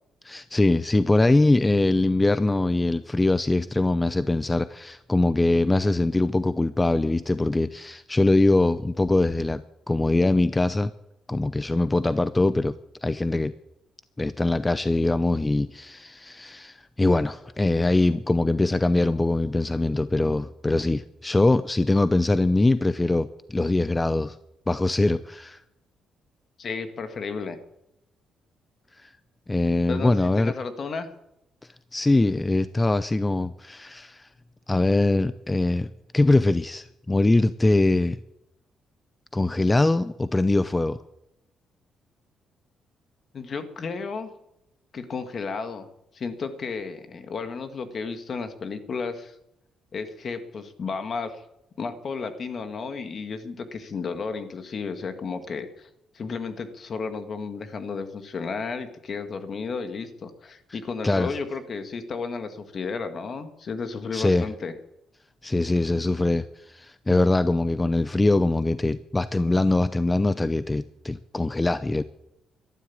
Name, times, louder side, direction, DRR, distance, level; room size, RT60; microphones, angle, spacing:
voice 1, 0.2-9.6 9.9-10.9 11.3-12.7 13.0-13.5 14.2-24.4 24.7-25.6 29.0-29.1 29.5-30.5 31.9-34.3 34.7-35.9 36.1-38.2 39.3-41.0 61.0-61.4 64.1-64.5 65.4-72.0, left 2 dB, 15° left, 14 dB, 0.6 m, -22 dB
voice 2, 26.6-27.6 29.9-31.1 43.3-44.3 44.9-45.9 46.1-49.4 49.9-51.4 51.8-55.9 56.1-64.7, left 4 dB, 50° left, 9 dB, 1.9 m, -33 dB
13.0 x 11.5 x 8.6 m, 0.84 s
cardioid pair, 90°, 0 cm